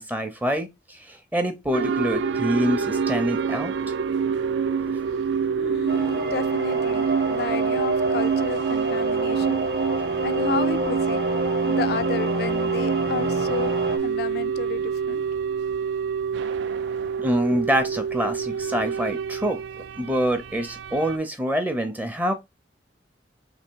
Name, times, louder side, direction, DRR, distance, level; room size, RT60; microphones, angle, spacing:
voice 1, 0.0-3.7 17.2-19.6 20.0-22.3, equal, 10° right, 0.5 m, -26 dB
sound 1, 1.7-21.2, right 6 dB, 75° right, 0.4 m, -26 dB
voice 2, 5.6-9.6 10.2-11.2 11.7-13.7 14.0-15.2, left 6 dB, 55° left, 0.3 m, -32 dB
sound 2, 5.9-14.0, equal, 55° right, 0.8 m, -29 dB
3.4 x 2.7 x 4.5 m
head